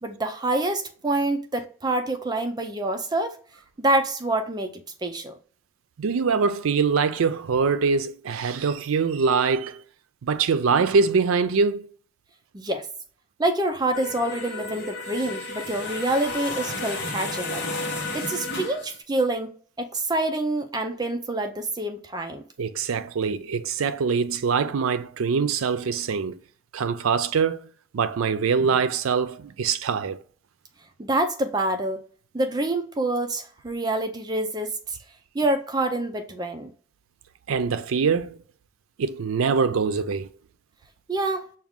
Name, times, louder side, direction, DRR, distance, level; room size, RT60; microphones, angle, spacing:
voice 1, 0.0-3.4 3.8-5.4 12.5-12.9 13.4-17.6 18.1-22.4 31.0-32.0 32.3-35.0 35.3-36.7 41.1-41.5, right 2 dB, 20° right, 0.4 m, -26 dB
voice 2, 6.0-9.8 10.2-11.9 22.6-26.4 26.7-27.6 27.9-30.2 37.5-38.4 39.0-40.3, right 5 dB, 90° right, 0.4 m, -23 dB
sound 1, 13.9-19.0, left 2 dB, 60° left, 1.0 m, -32 dB
5.9 x 2.4 x 3.5 m
head